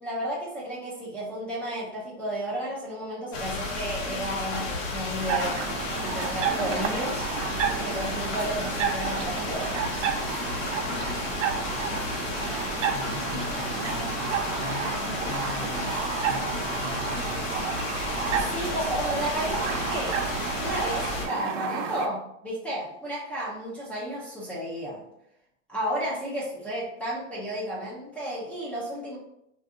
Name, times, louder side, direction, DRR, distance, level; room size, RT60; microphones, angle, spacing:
voice 1, 0.0-5.6 6.0-7.3 7.8-10.1 18.2-20.2 20.6-25.0 25.7-29.2, right 1 dB, 5° left, -7 dB, 0.3 m, -33 dB
sound 1, 3.3-21.2, left 3 dB, 80° left, 1.1 m, -32 dB
sound 2, 5.2-22.1, right 7 dB, 70° right, 0.6 m, -31 dB
voice 2, 12.8-17.5, left 3 dB, 45° left, -1 dB, 0.8 m, -40 dB
2.6 x 2.5 x 3.5 m, 0.79 s
supercardioid pair, 145°, 37 cm